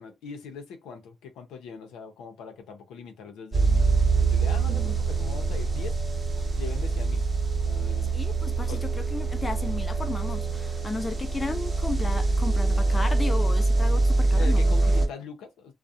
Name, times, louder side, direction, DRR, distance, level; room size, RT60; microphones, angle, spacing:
voice 1, 0.0-6.0 6.6-7.3 7.6-8.2 8.7-8.9 11.1-11.2 14.3-15.7, left 5 dB, 85° left, 0.6 m, -41 dB
sound 1, 3.5-15.1, right 3 dB, 30° right, 0.8 m, -24 dB
voice 2, 8.1-14.7, left 2 dB, 20° left, 0.6 m, -34 dB
2.4 x 2.1 x 2.7 m
cardioid pair, 90°, 0 cm